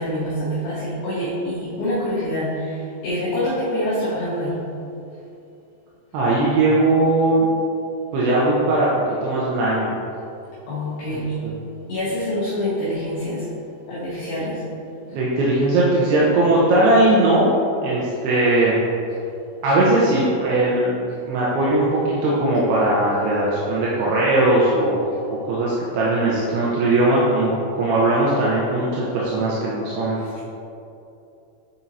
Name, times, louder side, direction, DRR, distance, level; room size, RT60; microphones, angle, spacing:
voice 1, 0.0-4.6 10.7-11.4 11.9-13.5 13.9-14.6, equal, 70° left, -9 dB, 2.5 m, -25 dB
voice 2, 6.1-7.5 8.1-8.9 9.2-9.9 11.1-11.5 15.1-17.5 17.8-18.8 19.6-21.0 21.3-27.5 27.8-30.2, right 2 dB, 80° right, -6 dB, 2.7 m, -19 dB
9.8 x 4.5 x 2.7 m, 2.7 s
omnidirectional pair, 5.0 m